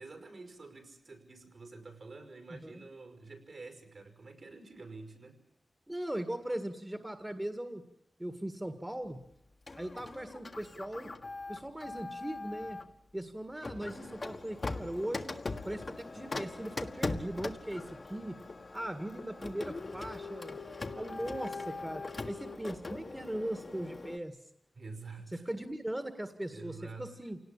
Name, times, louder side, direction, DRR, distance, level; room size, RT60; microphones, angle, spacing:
voice 1, 0.0-5.4 24.7-25.5 26.5-27.1, right 3 dB, 65° right, 6 dB, 5.6 m, -48 dB
voice 2, 2.5-2.8 5.9-7.8 8.2-9.2 9.7-11.1 11.5-12.8 13.1-15.4 15.6-18.4 18.7-20.6 21.0-24.4 25.3-27.4, right 1 dB, 15° right, 8 dB, 1.9 m, -39 dB
Printer, 9.7-12.9 13.6-24.2, left 3 dB, 45° left, 1.5 m, -41 dB
28.0 x 18.5 x 8.8 m, 0.78 s
wide cardioid pair, 75°, 0 cm